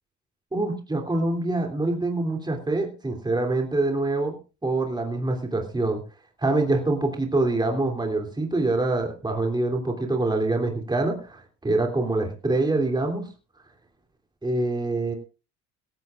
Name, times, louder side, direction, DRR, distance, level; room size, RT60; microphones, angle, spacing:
voice 1, 0.5-6.0 6.4-13.3 14.4-15.1, right 2 dB, 10° right, 3 dB, 3.0 m, -25 dB
17.0 x 15.5 x 2.5 m, 0.33 s
hypercardioid pair, 75°, 34 cm